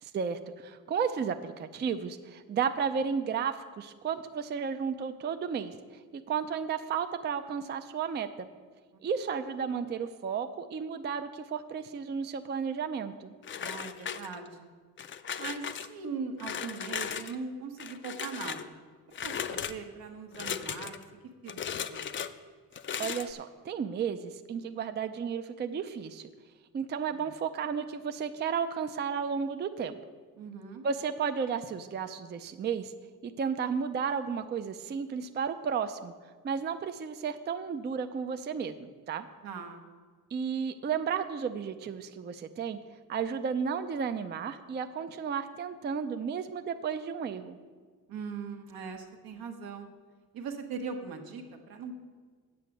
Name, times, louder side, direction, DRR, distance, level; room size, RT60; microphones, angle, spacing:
voice 1, 0.0-8.5 9.0-13.3 23.0-26.3 26.7-30.0 30.8-32.9 33.2-36.1 36.4-39.3 40.3-42.8 43.1-47.6, right 6 dB, 30° right, 9 dB, 0.4 m, -33 dB
sound 1, 13.4-14.6 15.0-15.9 16.4-17.4 17.8-18.7 19.1-19.8 20.3-21.0 21.5-22.3 22.7-23.3, left 7 dB, 35° left, 0.4 m, -37 dB
voice 2, 13.6-14.7 15.4-18.8 19.2-21.0 21.4-22.2 27.1-27.3 30.4-30.8 39.4-39.8 48.1-49.9 50.3-52.0, right 5 dB, 75° right, 4 dB, 1.3 m, -40 dB
8.4 x 6.0 x 7.7 m, 1.5 s
cardioid pair, 125°, 36 cm